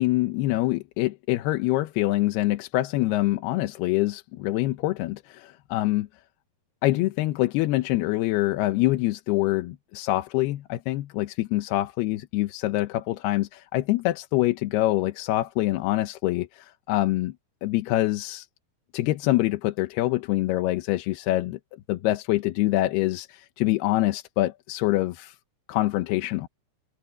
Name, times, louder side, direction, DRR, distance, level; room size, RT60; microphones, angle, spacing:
voice 1, 0.0-6.1 6.8-17.4 17.6-18.5 18.9-21.6 21.9-25.4 25.7-26.5, left 17 dB, 80° left, 2.8 m, -25 dB
omnidirectional pair, 4.6 m